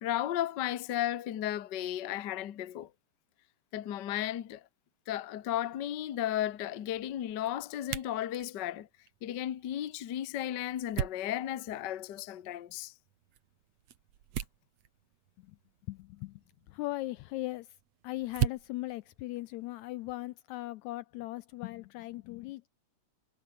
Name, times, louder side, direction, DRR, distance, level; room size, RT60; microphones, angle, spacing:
voice 1, 0.0-2.9 3.7-4.7 5.1-8.9 9.2-12.9, left 12 dB, 60° left, 1.1 m, -34 dB
sound 1, 5.4-20.3, right 10 dB, 60° right, 2.5 m, -42 dB
voice 2, 15.9-16.4 16.7-17.7 18.0-22.7, left 17 dB, 80° left, 1.7 m, -39 dB
omnidirectional pair, 3.6 m